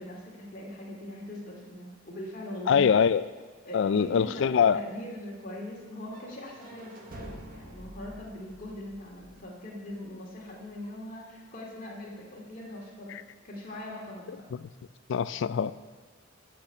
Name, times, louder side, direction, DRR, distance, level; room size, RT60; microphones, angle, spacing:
voice 1, 0.0-2.9 3.7-13.2 13.4-14.5, left 1 dB, 40° left, 2.3 m, -41 dB
voice 2, 2.7-3.3 3.7-4.8 13.1-13.2 14.5-14.7 15.1-15.7, left 7 dB, 60° left, 0.3 m, -24 dB
sound 1, 6.1-10.0, right 1 dB, 45° right, 1.3 m, -48 dB
11.5 x 5.9 x 6.6 m
head